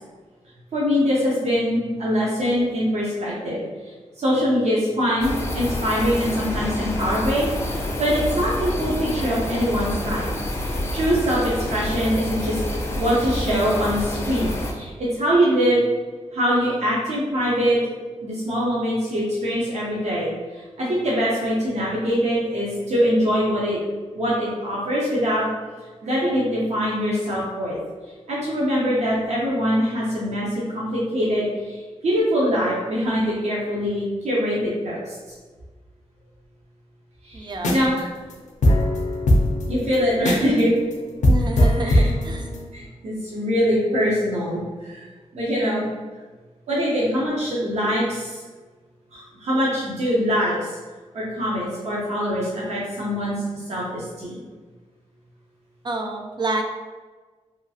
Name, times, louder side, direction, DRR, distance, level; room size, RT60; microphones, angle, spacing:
voice 1, 0.7-10.3 10.6-12.6 12.9-15.8 16.3-17.8 18.2-23.8 24.2-25.5 26.0-27.8 28.3-35.1 37.2-38.1 39.7-40.7 41.8-42.1 42.7-45.1 45.3-45.8 46.7-48.4 49.1-50.8 51.1-54.5, equal, 70° right, -6 dB, 0.6 m, -23 dB
sound 1, 5.2-14.7, left 1 dB, 20° left, 0.5 m, -28 dB
voice 2, 37.3-37.7 41.3-42.5 55.8-56.6, right 2 dB, 40° right, 3 dB, 0.4 m, -28 dB
sound 2, 37.5-38.0 38.3-38.4 38.6-40.6 40.9-41.0 41.2-42.7, left 1 dB, 90° left, 0.4 m, -19 dB
2.8 x 2.3 x 2.7 m, 1.4 s
wide cardioid pair, 95°, 12 cm